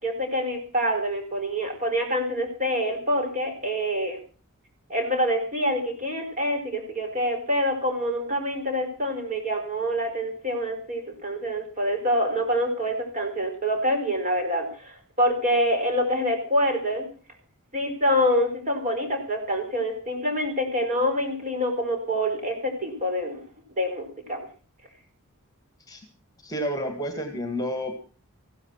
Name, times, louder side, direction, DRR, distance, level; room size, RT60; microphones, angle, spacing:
voice 1, 0.0-4.2 4.9-17.1 17.7-23.4 23.8-24.4, equal, 35° right, 4 dB, 4.5 m, -26 dB
voice 2, 26.4-27.9, equal, 15° left, 6 dB, 2.2 m, -30 dB
15.5 x 13.0 x 5.7 m, 0.38 s
head